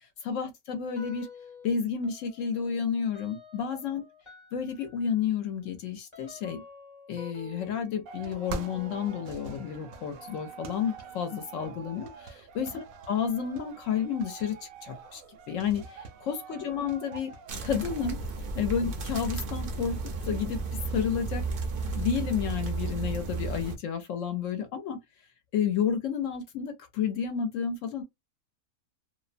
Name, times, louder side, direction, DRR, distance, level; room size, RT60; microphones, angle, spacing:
voice 1, 0.2-1.3 1.6-4.0 4.5-6.6 7.1-14.6 14.8-15.2 15.5-17.3 17.6-18.2 18.5-20.0 20.3-20.6 20.9-21.4 21.9-25.0 25.5-28.0, left 7 dB, 70° left, 0.9 m, -31 dB
sound 1, 0.9-1.7 2.0-12.4, left 4 dB, 25° left, 0.8 m, -51 dB
sound 2, 8.1-18.1, right 4 dB, 75° right, 1.0 m, -44 dB
sound 3, 17.5-23.7, right 3 dB, 60° right, 0.6 m, -33 dB
2.6 x 2.1 x 2.4 m
omnidirectional pair, 1.5 m